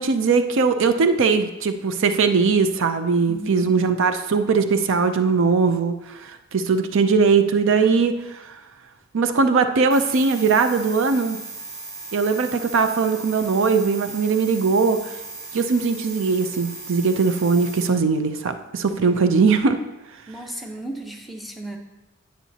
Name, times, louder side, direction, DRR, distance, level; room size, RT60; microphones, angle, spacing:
voice 1, 0.0-8.6 9.1-11.4 12.1-15.1 15.5-19.8, right 4 dB, 65° right, 9 dB, 0.5 m, -20 dB
voice 2, 3.3-3.7 20.3-21.8, right 1 dB, ahead, 0 dB, 0.9 m, -34 dB
sound 1, 9.9-17.9, right 3 dB, 80° right, 2.7 m, -37 dB
10.0 x 8.6 x 2.8 m, 1.0 s
head